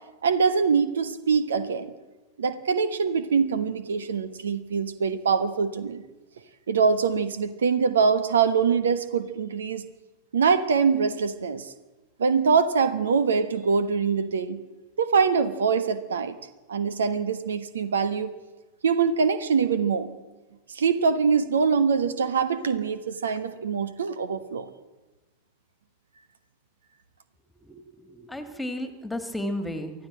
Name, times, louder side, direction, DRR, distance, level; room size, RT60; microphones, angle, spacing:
voice 1, 0.2-1.9 2.4-6.0 6.7-9.8 10.3-11.7 12.2-14.6 15.0-16.4 16.7-18.3 18.8-20.1 20.7-24.6, right 5 dB, 65° right, 13 dB, 1.2 m, -24 dB
voice 2, 27.6-29.9, left 1 dB, 5° left, 7 dB, 2.3 m, -33 dB
24.5 x 14.5 x 7.6 m, 1.1 s
figure-of-eight pair, 90°, 0 cm